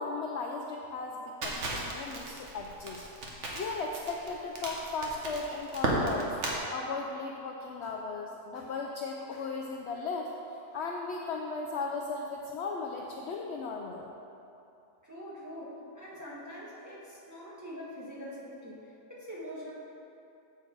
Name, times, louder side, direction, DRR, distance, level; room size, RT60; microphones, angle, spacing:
voice 1, 0.0-3.0 3.5-6.3 6.7-10.3 10.7-14.1, left 3 dB, 75° left, 0 dB, 0.6 m, -36 dB
Crackle, 1.4-6.6, right 2 dB, 50° right, 1.3 m, -35 dB
voice 2, 15.0-19.7, equal, 10° right, -8 dB, 1.5 m, -44 dB
7.7 x 6.4 x 4.5 m, 2.9 s
omnidirectional pair, 1.7 m